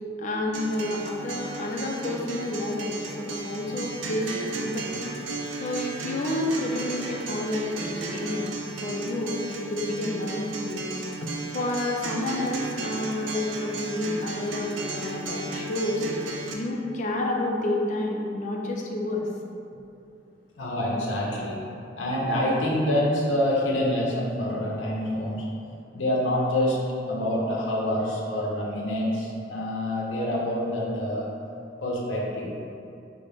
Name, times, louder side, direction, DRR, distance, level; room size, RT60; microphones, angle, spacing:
voice 1, 0.2-5.0 5.6-10.9 11.2-19.3, left 1 dB, 45° left, 0 dB, 0.4 m, -30 dB
Acoustic guitar, 0.5-16.5, right 2 dB, 90° right, 0.4 m, -34 dB
voice 2, 20.6-21.6 22.0-25.4 25.9-26.8 27.1-31.3 31.8-32.6, left 1 dB, 85° left, -4 dB, 0.6 m, -26 dB
3.9 x 2.1 x 3.3 m, 2.6 s
head